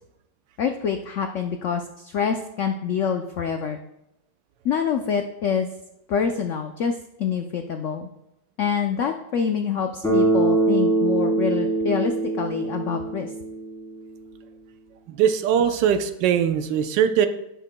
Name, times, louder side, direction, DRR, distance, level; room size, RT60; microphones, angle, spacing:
voice 1, 0.6-3.8 4.6-5.7 6.1-8.1 8.6-13.3, left 7 dB, 80° left, 5 dB, 0.6 m, -26 dB
Bass guitar, 10.0-14.0, right 2 dB, ahead, 3.0 m, -23 dB
voice 2, 15.1-17.3, right 8 dB, 80° right, 9 dB, 1.4 m, -21 dB
16.5 x 6.8 x 2.2 m, 0.87 s
omnidirectional pair, 1.9 m